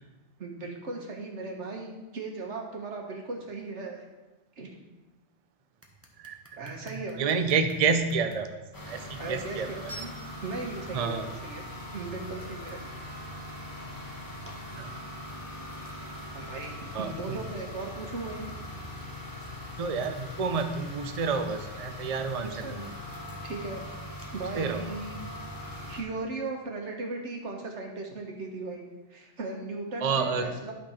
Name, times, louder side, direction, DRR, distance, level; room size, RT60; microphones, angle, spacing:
voice 1, 0.4-4.0 4.6-4.7 6.6-7.6 9.2-10.1 10.4-11.6 11.9-12.8 16.3-18.4 22.4-22.8 23.4-25.3 25.9-28.8 29.1-30.7, right 3 dB, 85° right, 1 dB, 1.7 m, -37 dB
sound 1, 5.8-8.4 9.0-9.1 9.6-10.6 11.4-13.0 13.4-14.1 14.4-16.3 16.6-16.8 17.0-20.9 21.2-24.3, right 2 dB, 15° right, 1.0 m, -53 dB
voice 2, 6.7-8.6 8.9-9.9 10.9-11.3 14.5-14.9 16.9-17.4 19.8-22.9 24.5-24.9 30.0-30.5, right 5 dB, 40° right, 7 dB, 0.6 m, -29 dB
sound 2, 8.7-26.0, left 1 dB, 20° left, 1.3 m, -41 dB
12.0 x 4.4 x 5.7 m, 1.1 s
omnidirectional pair, 1.2 m